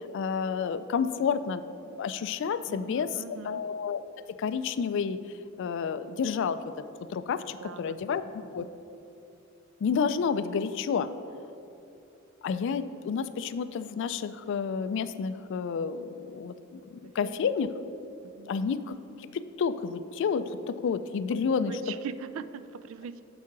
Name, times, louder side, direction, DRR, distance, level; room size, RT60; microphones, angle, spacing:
voice 1, 0.1-4.0 4.4-5.2 5.6-6.6 7.1-8.2 8.5-8.6 9.8-11.1 12.4-17.7 18.5-19.0 19.3-21.8, left 6 dB, 65° left, 13 dB, 0.3 m, -30 dB
voice 2, 2.7-3.6 7.6-8.7 17.2-17.4 18.2-18.5 21.5-23.2, right 7 dB, 75° right, 13 dB, 0.3 m, -42 dB
7.2 x 4.8 x 5.9 m, 2.8 s
head